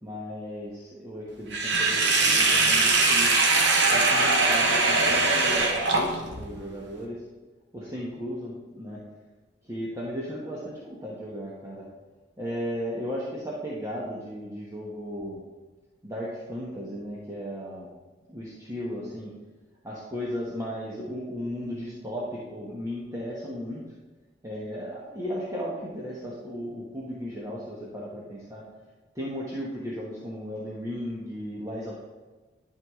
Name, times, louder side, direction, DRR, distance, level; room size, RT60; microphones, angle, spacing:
voice 1, 0.0-3.4 3.9-7.2 7.7-9.0 9.6-11.8 12.4-15.4 16.0-17.9 18.3-19.3 19.8-23.8 24.4-28.6 29.1-32.1, equal, 15° right, -6 dB, 1.2 m, -35 dB
Sink (filling or washing), 1.5-6.4, right 3 dB, 70° right, 1.3 m, -21 dB
11.0 x 4.7 x 3.7 m, 1.3 s
head